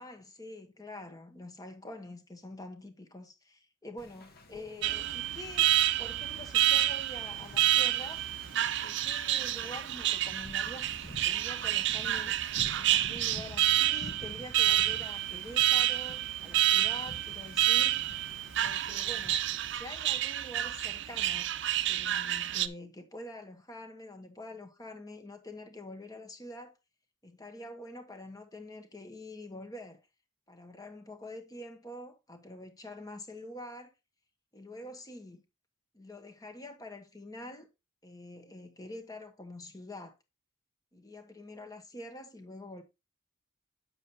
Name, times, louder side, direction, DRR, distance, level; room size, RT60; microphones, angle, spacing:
voice 1, 0.0-8.2 8.8-12.4 12.7-18.1 18.6-19.4 19.7-21.5 21.9-26.7 27.2-30.0 30.5-33.9 34.5-35.4 35.9-37.7 38.0-40.1 40.9-42.8, left 1 dB, 20° left, 1.2 m, -46 dB
Wind / Ocean, 4.0-19.8, left 1 dB, 50° left, 1.4 m, -51 dB
Alarm, 4.8-22.7, right 14 dB, 60° right, 0.5 m, -29 dB
8.2 x 7.2 x 2.9 m
head